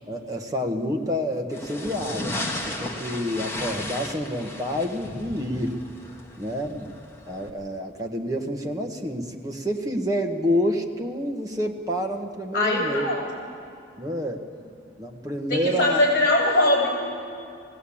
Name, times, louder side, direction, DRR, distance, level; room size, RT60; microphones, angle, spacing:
voice 1, 0.1-5.8 6.4-7.0 7.3-13.1 14.0-14.4 15.0-16.0, equal, 20° right, 1 dB, 1.4 m, -28 dB
sound 1, 1.5-7.5, left 1 dB, 15° left, 1.6 m, -35 dB
voice 2, 12.5-13.2 15.5-17.0, left 1 dB, 50° left, -2 dB, 6.7 m, -21 dB
19.5 x 16.5 x 8.7 m, 2.5 s
head